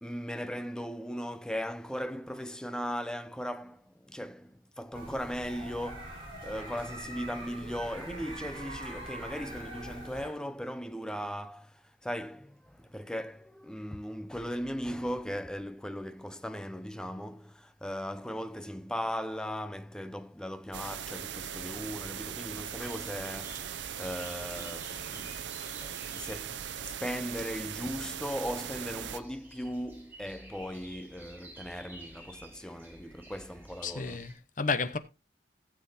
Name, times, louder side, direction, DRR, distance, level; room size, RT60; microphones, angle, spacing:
voice 1, 0.0-34.3, equal, 5° left, 0.5 m, -38 dB
sound 1, 4.9-10.3, right 1 dB, 30° right, 4.9 m, -43 dB
sound 2, 20.7-29.2, right 9 dB, 80° right, 0.6 m, -39 dB
sound 3, 22.4-34.3, right 1 dB, 10° right, 3.8 m, -52 dB
voice 2, 33.8-35.0, left 4 dB, 45° left, 0.9 m, -32 dB
16.0 x 7.5 x 2.7 m
head